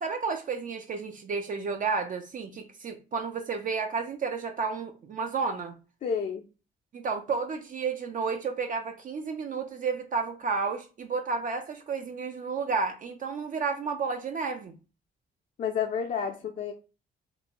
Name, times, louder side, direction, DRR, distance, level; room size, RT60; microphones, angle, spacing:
voice 1, 0.0-5.7 6.9-14.8, right 5 dB, 40° right, 6 dB, 0.4 m, -31 dB
voice 2, 6.0-6.4 15.6-16.7, left 7 dB, 40° left, 2 dB, 0.4 m, -30 dB
2.5 x 2.2 x 2.8 m, 0.33 s
cardioid pair, 90°, 20 cm